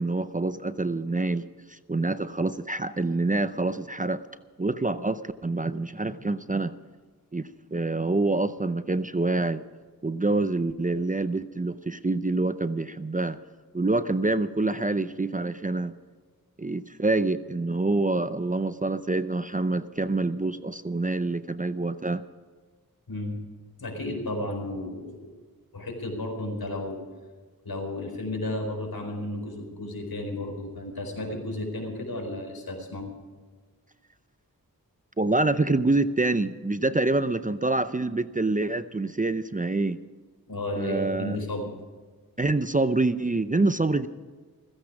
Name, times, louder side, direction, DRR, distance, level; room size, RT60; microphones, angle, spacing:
voice 1, 0.0-1.4 1.7-4.2 4.6-6.7 7.3-9.6 10.0-13.4 13.7-15.9 16.6-22.2 35.2-40.0 40.7-41.4 42.4-44.1, right 2 dB, 20° right, 12 dB, 0.6 m, -26 dB
voice 2, 23.8-25.3 25.7-27.0 27.6-33.1 40.5-41.7, left 1 dB, 70° left, 2 dB, 4.4 m, -33 dB
15.5 x 15.5 x 4.8 m, 1.4 s
wide cardioid pair, 65°, 37 cm